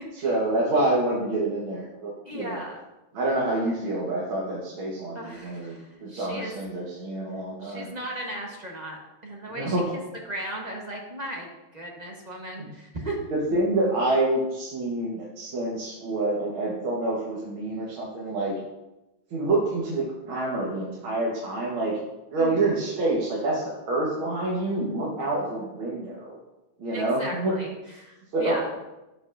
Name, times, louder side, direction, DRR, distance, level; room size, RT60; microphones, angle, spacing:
voice 1, 0.2-2.6 3.1-7.9 9.5-9.9 12.6-12.7 13.3-18.6 19.3-22.0 22.3-26.4 26.8-27.6 28.3-28.6, right 2 dB, 75° right, -5 dB, 2.0 m, -27 dB
voice 2, 2.2-2.8 5.1-6.5 7.6-9.8 10.3-13.2 22.4-22.7 26.9-27.7 28.0-28.7, right 1 dB, 30° right, 0 dB, 0.8 m, -36 dB
12.0 x 5.5 x 2.5 m, 1.0 s
omnidirectional pair, 2.2 m